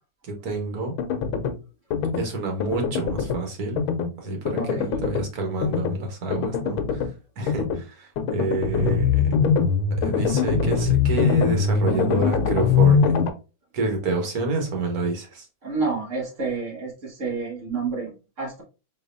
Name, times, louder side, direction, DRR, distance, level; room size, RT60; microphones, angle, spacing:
voice 1, 0.2-0.9 2.2-3.8 4.2-7.1 7.4-9.2 10.0-13.1 13.7-15.5, right 2 dB, 80° right, 3 dB, 1.6 m, -28 dB
sound 1, 1.0-1.6 1.9-2.2 2.6-3.4 3.8-4.1 4.4-5.3 5.6-6.0 6.3-7.1 7.5-7.8 8.2-13.3, left 6 dB, 85° left, 1.1 m, -22 dB
voice 2, 4.6-5.1 15.6-18.6, right 4 dB, 55° right, -1 dB, 1.6 m, -29 dB
4.0 x 3.0 x 2.5 m, 0.31 s
omnidirectional pair, 1.6 m